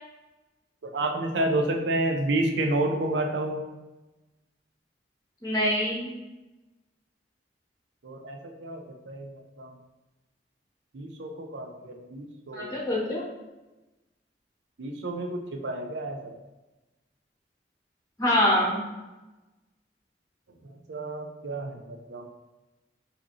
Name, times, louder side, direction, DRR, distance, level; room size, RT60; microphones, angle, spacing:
voice 1, 0.8-3.6 8.0-9.3 9.6-9.7 10.9-12.7 14.8-16.4 20.6-22.3, right 2 dB, 80° right, 2 dB, 0.6 m, -30 dB
voice 2, 5.4-6.1 12.5-13.3 18.2-18.8, left 1 dB, 20° left, -4 dB, 0.8 m, -25 dB
4.9 x 2.8 x 2.9 m, 1.1 s
head